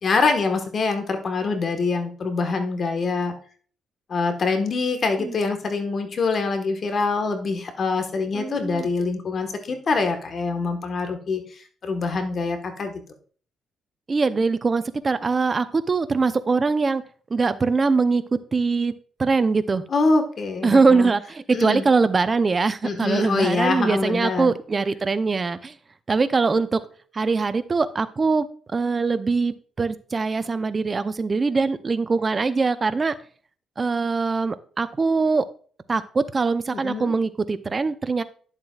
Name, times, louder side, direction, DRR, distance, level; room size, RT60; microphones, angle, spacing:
voice 1, 0.0-3.3 4.1-13.0 19.9-21.1 21.5-21.8 22.8-24.5 36.7-37.1, left 4 dB, 50° left, 6 dB, 1.4 m, -25 dB
voice 2, 8.3-8.9 14.1-17.0 17.3-18.9 19.2-19.8 20.6-25.8 26.1-26.8 27.1-28.5 28.7-33.1 33.8-35.4 35.9-38.2, right 4 dB, 30° right, 12 dB, 0.7 m, -22 dB
10.5 x 7.5 x 2.4 m, 0.44 s
cardioid pair, 90°, 0 cm